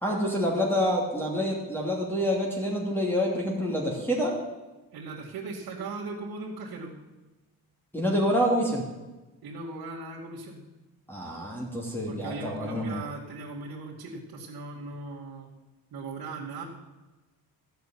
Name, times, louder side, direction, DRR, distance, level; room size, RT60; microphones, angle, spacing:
voice 1, 0.0-4.3 7.9-8.8 11.1-13.0, equal, 5° left, -2 dB, 2.8 m, -27 dB
voice 2, 4.9-6.9 9.4-10.6 12.1-15.5 15.9-16.6, right 3 dB, 70° right, -6 dB, 2.5 m, -38 dB
14.0 x 6.1 x 9.3 m, 1.1 s
cardioid pair, 105°, 38 cm